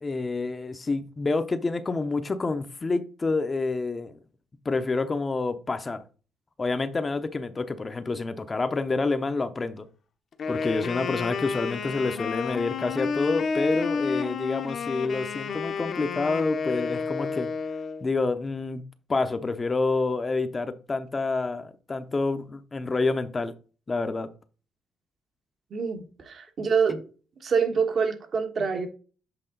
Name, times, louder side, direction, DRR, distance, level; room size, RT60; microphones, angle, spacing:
voice 1, 0.0-4.2 4.6-6.0 6.6-9.9 10.5-17.5 18.0-18.8 19.1-23.5 23.9-24.3, left 3 dB, 30° left, 0.7 m, -28 dB
Wind instrument woodwind instrument, 10.3-18.1, left 5 dB, 55° left, 0.8 m, -30 dB
voice 2, 25.7-27.0 27.4-28.9, right 6 dB, 55° right, 1.5 m, -26 dB
7.7 x 3.7 x 3.9 m
cardioid pair, 90°, 0 cm